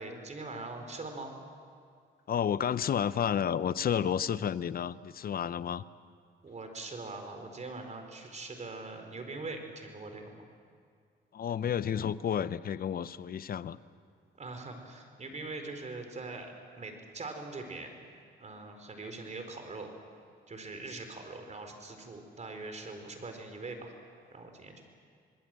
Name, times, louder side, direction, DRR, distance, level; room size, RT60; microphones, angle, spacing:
voice 1, 0.0-1.4 6.4-10.4 14.3-17.9 18.4-19.9 20.5-23.9 24.3-24.8, right 3 dB, 35° right, 5 dB, 4.4 m, -42 dB
voice 2, 2.3-5.8 11.3-13.8, left 8 dB, 50° left, 16 dB, 0.7 m, -31 dB
26.5 x 20.0 x 7.7 m, 2.2 s
cardioid pair, 90°, 20 cm